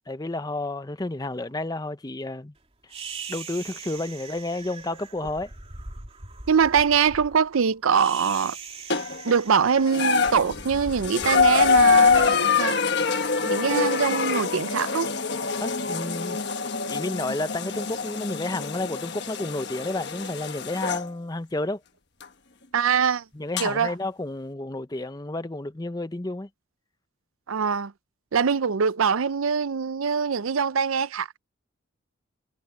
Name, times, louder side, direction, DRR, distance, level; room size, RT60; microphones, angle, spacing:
voice 1, 0.1-2.5 3.3-5.5 15.6-16.4 16.9-21.8 23.3-26.5, left 2 dB, 20° left, 0.6 m, -31 dB
sound 1, 2.9-13.3, right 4 dB, 30° right, 3.0 m, -41 dB
voice 2, 6.5-8.6 9.2-12.7 13.4-15.1 22.7-23.2 23.6-23.9 27.5-27.9 28.3-31.4, right 6 dB, 85° right, 0.6 m, -23 dB
sound 2, 8.9-9.4 9.9-21.1 22.2-22.3 23.6-23.7, left 5 dB, 55° left, 1.3 m, -24 dB
head